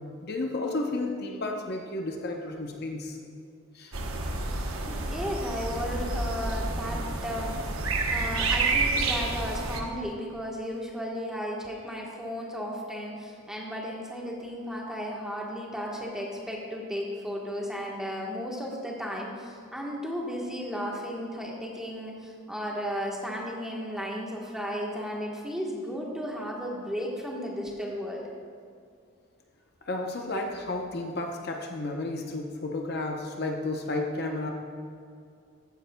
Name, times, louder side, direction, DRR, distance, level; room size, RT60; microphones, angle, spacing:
voice 1, 0.2-3.2 3.7-3.9 29.9-34.5, left 2 dB, 50° left, 2 dB, 0.7 m, -32 dB
sound 1, 3.9-9.8, right 3 dB, 85° right, 0.9 m, -29 dB
voice 2, 4.9-7.5 8.1-28.3, equal, 5° right, -3 dB, 1.2 m, -34 dB
14.5 x 9.5 x 2.2 m, 2.4 s
head